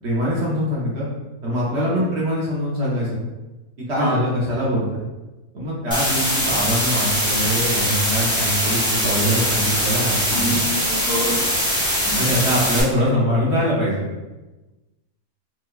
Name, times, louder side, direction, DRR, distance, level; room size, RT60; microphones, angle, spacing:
voice 1, 0.0-1.1 1.4-3.2 3.9-5.0 5.5-10.6 12.2-14.0, equal, 55° right, -6 dB, 0.9 m, -23 dB
voice 2, 1.7-2.1 4.0-4.3 10.3-11.5 12.0-12.4 12.6-13.2, equal, 85° left, -4 dB, 1.5 m, -28 dB
sound 1, 5.9-12.8, equal, 5° left, 0.8 m, -22 dB
4.6 x 2.2 x 2.3 m, 1.1 s
omnidirectional pair, 1.6 m